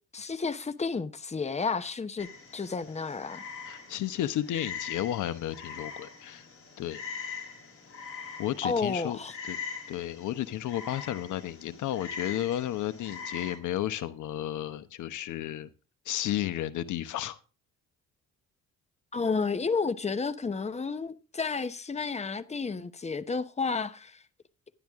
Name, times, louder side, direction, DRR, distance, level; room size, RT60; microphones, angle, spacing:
voice 1, 0.1-3.4 8.6-9.3 19.1-24.2, left 4 dB, 20° left, 1.0 m, -31 dB
Frog, 2.2-13.6, left 6 dB, 45° left, 4.7 m, -42 dB
voice 2, 3.7-6.5 6.8-7.0 8.4-9.2 9.5-9.6 9.9-15.7 16.0-17.4, left 12 dB, 80° left, 1.0 m, -33 dB
12.5 x 11.0 x 3.6 m
cardioid pair, 90°, 30 cm